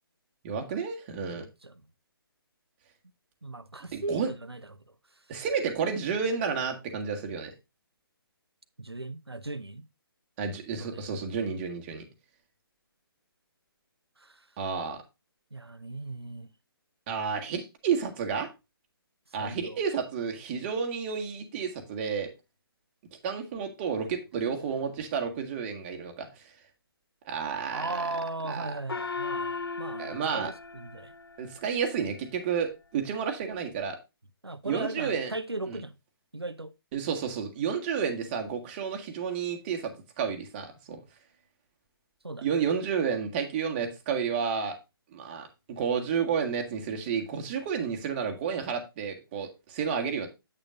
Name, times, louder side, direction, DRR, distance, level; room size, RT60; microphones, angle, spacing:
voice 1, 0.4-1.4 3.9-4.3 5.3-7.5 10.4-12.0 14.6-15.0 17.1-18.5 19.3-22.3 23.2-26.4 27.2-28.0 28.5-28.7 30.0-30.5 31.4-34.0 34.6-35.3 35.7-35.8 36.9-41.0 42.4-44.8 45.1-50.3, right 6 dB, 25° right, 1.8 m, -31 dB
voice 2, 1.3-1.7 3.4-4.8 5.1-5.2 8.8-9.8 10.8-11.0 14.2-14.5 15.5-16.5 19.3-19.8 27.7-31.1 34.4-35.9 36.3-36.7 42.2-42.5, right 2 dB, 85° right, 0.9 m, -38 dB
Gong, 28.9-31.8, left 4 dB, 70° left, 0.7 m, -36 dB
8.8 x 8.6 x 2.5 m
figure-of-eight pair, 140°, 13 cm